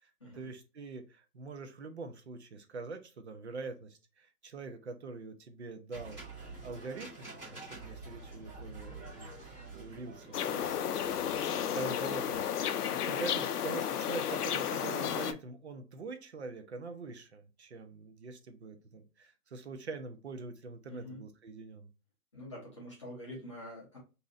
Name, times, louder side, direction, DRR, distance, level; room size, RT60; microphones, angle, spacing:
voice 1, 0.0-11.1 11.7-21.9, right 3 dB, 50° right, 7 dB, 0.6 m, -44 dB
sound 1, 5.9-12.5, right 2 dB, 5° right, 1.5 m, -48 dB
sound 2, 10.3-15.3, left 9 dB, 80° left, 0.5 m, -33 dB
voice 2, 20.9-21.2 22.3-24.0, left 1 dB, 20° left, -6 dB, 0.6 m, -46 dB
3.0 x 2.7 x 2.5 m, 0.31 s
hypercardioid pair, 160°, 46 cm